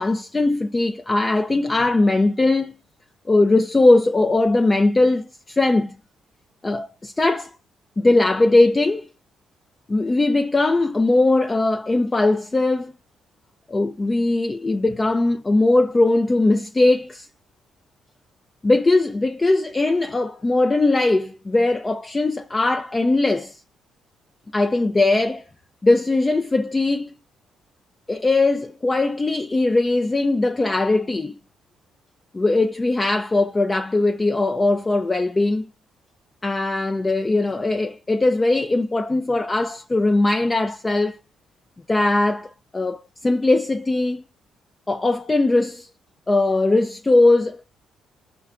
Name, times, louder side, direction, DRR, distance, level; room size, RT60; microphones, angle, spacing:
voice 1, 0.0-2.7 3.3-5.9 6.6-7.5 8.0-9.0 9.9-12.9 13.7-17.3 18.6-23.6 24.5-25.4 25.8-27.1 28.1-31.4 32.3-35.6 36.4-41.2 41.9-44.2 44.9-45.9 46.3-47.6, left 2 dB, 20° left, 0.3 m, -20 dB
5.5 x 2.3 x 3.5 m
cardioid pair, 90°, 0 cm